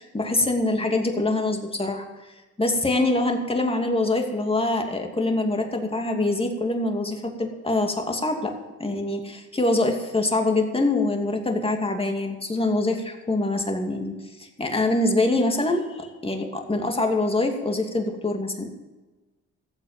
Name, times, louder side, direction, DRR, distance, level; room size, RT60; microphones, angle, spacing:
voice 1, 0.0-2.3 2.6-8.5 8.8-18.7, left 2 dB, 20° left, 4 dB, 2.6 m, -24 dB
14.5 x 8.1 x 9.1 m, 1.2 s
cardioid pair, 90°, 30 cm